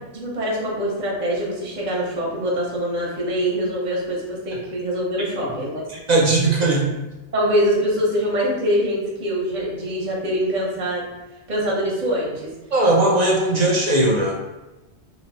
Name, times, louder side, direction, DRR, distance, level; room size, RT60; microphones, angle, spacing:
voice 1, 0.1-5.8 7.3-11.0 11.5-12.5 13.6-13.7, equal, 40° right, -4 dB, 0.9 m, -24 dB
voice 2, 5.9-6.9 12.7-14.3, right 2 dB, 60° right, -2 dB, 0.4 m, -18 dB
2.9 x 2.1 x 4.0 m, 1.1 s
omnidirectional pair, 1.2 m